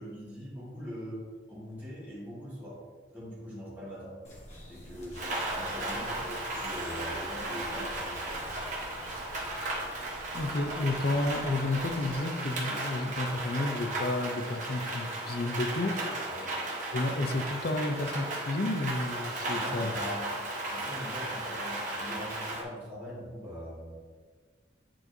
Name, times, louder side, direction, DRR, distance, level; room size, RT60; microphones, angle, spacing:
voice 1, 0.0-2.8 3.1-4.2 4.7-8.2 16.3-16.6 19.5-20.4 20.7-24.0, equal, 10° right, -11 dB, 1.9 m, -42 dB
sound 1, 4.2-12.2, equal, 35° left, 1.4 m, -48 dB
Rain, 5.1-22.6, right 1 dB, 40° right, 1.1 m, -35 dB
voice 2, 10.3-16.0 16.9-19.9, left 2 dB, 55° left, 6 dB, 0.6 m, -31 dB
8.9 x 4.4 x 2.7 m, 1.5 s
head